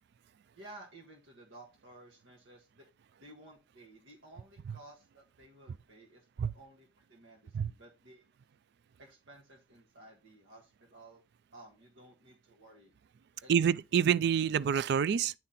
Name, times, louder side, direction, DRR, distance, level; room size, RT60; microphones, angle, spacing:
voice 1, 0.5-2.9 3.2-8.2 9.0-11.2 11.5-12.9 13.4-13.5, right 1 dB, 85° right, 1.5 m, -55 dB
voice 2, 13.5-15.3, right 8 dB, 60° right, 0.3 m, -27 dB
9.4 x 4.3 x 3.8 m
head